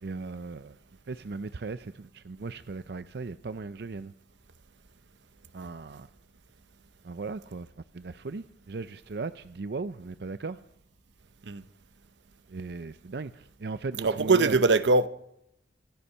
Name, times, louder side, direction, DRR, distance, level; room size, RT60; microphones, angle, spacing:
voice 1, 0.0-0.8 1.1-4.1 5.5-6.1 7.0-10.6 12.5-14.5, right 4 dB, 65° right, 0.5 m, -37 dB
voice 2, 14.0-15.1, right 3 dB, 85° right, 0.8 m, -22 dB
26.0 x 9.8 x 5.6 m
head